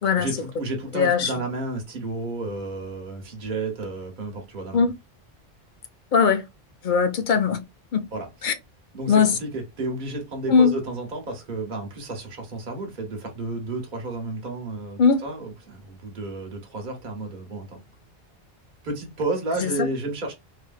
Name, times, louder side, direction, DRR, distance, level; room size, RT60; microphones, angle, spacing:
voice 1, 0.1-4.9 8.1-8.3 8.9-17.8 18.8-20.3, right 2 dB, 50° right, 1.1 m, -32 dB
voice 2, 0.9-1.3 4.7-4.9 6.1-6.4 6.8-7.6 7.9-8.0 8.4-8.5 9.1-9.3 10.5-10.7 15.0-15.2 19.6-19.7, left 6 dB, 60° left, 0.6 m, -19 dB
2.8 x 2.5 x 2.3 m
omnidirectional pair, 1.0 m